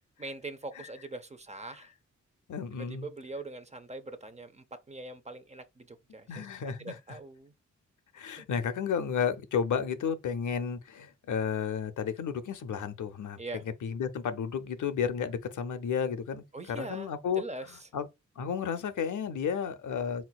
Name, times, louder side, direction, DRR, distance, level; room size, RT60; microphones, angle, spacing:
voice 1, 0.2-1.9 2.9-6.5 6.8-7.5 8.4-8.5 13.4-13.6 16.5-17.9, right 2 dB, 25° right, 0.5 m, -42 dB
voice 2, 2.5-3.1 6.3-6.9 8.1-13.4 13.8-17.4 17.9-18.1 18.4-20.2, left 7 dB, 80° left, 0.6 m, -32 dB
4.3 x 4.0 x 2.2 m
wide cardioid pair, 90°, 30 cm